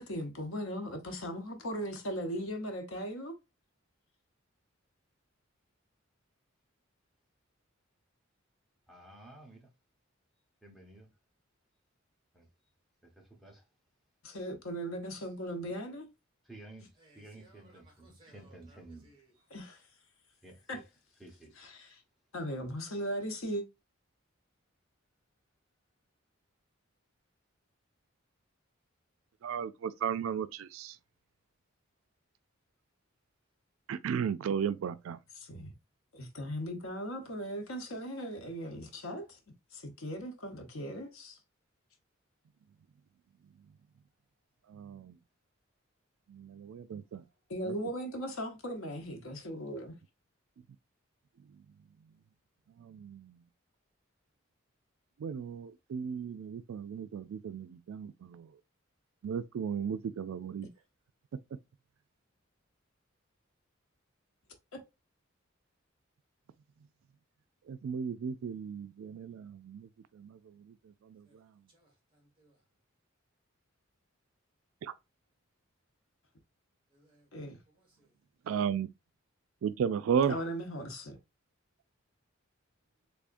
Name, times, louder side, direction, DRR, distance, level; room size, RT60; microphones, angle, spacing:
voice 1, 0.0-3.3 14.2-16.1 19.5-19.8 20.7-20.8 21.6-22.0 22.3-23.6 35.4-35.7 36.1-39.4 39.7-41.4 47.5-49.9 64.7-64.8 77.3-77.6 80.3-81.2, equal, 85° left, 0.9 m, -38 dB
voice 2, 8.9-9.7 10.6-11.1 12.3-12.5 13.0-13.6 16.4-19.4 20.4-20.8 21.2-21.7, right 2 dB, ahead, 1.0 m, -53 dB
voice 3, 17.0-19.3 71.2-71.4 71.7-72.6 76.9-78.1, right 2 dB, 25° right, 1.7 m, -64 dB
voice 4, 29.4-31.0 33.9-35.2 44.7-45.2 46.3-47.2 47.6-47.8 52.8-53.4 55.2-58.5 59.2-60.7 67.7-69.9 70.1-70.7 71.0-71.3 74.8-74.9 78.5-78.9 79.6-80.4, right 7 dB, 80° right, 0.3 m, -35 dB
3.5 x 3.5 x 2.5 m
head